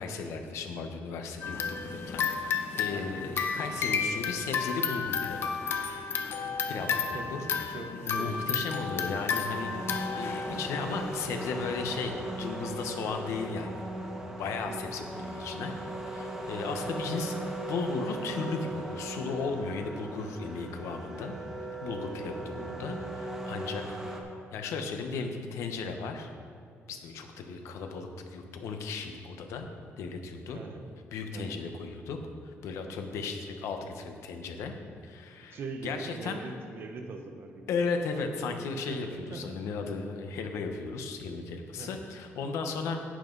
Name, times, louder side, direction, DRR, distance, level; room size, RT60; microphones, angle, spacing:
voice 1, 0.0-5.6 6.3-13.8 14.2-15.7 16.1-21.4 21.8-24.0 24.5-26.3 26.9-29.7 30.0-30.6 31.1-32.2 32.4-34.7 35.0-36.4 37.7-43.0, left 4 dB, 85° left, 5 dB, 1.2 m, -36 dB
sound 1, 1.4-11.4, left 6 dB, 55° left, 1.0 m, -32 dB
voice 2, 6.7-8.5 14.7-14.9 22.2-22.5 30.5-30.9 31.3-31.6 35.5-37.7 38.9-39.4 41.8-42.0, right 4 dB, 50° right, 4 dB, 0.9 m, -42 dB
sound 2, 9.4-24.2, right 2 dB, 10° right, 1.4 m, -38 dB
11.0 x 9.2 x 4.0 m, 2.2 s
cardioid pair, 130°, 5 cm